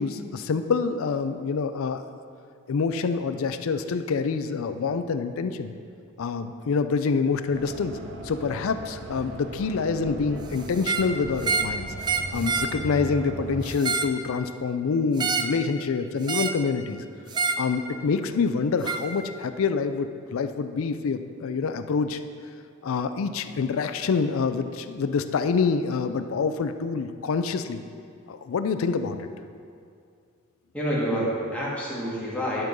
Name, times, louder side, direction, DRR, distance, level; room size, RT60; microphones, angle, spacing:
voice 1, 0.0-2.0 2.7-5.7 6.2-8.0 8.2-11.9 12.3-17.0 17.6-22.2 22.8-27.8 28.3-29.3, left 5 dB, 65° left, 9 dB, 0.4 m, -26 dB
sound 1, 7.5-13.7, right 2 dB, 60° right, 0.7 m, -38 dB
sound 2, 10.8-11.1 11.4-11.8 12.0-12.7 13.6-14.2 15.2-15.6 16.3-16.6 17.3-17.7 18.9-19.0, right 4 dB, 20° right, 0.3 m, -27 dB
voice 2, 30.7-32.6, equal, 5° left, -7 dB, 1.7 m, -28 dB
10.5 x 3.7 x 5.3 m, 2.4 s
head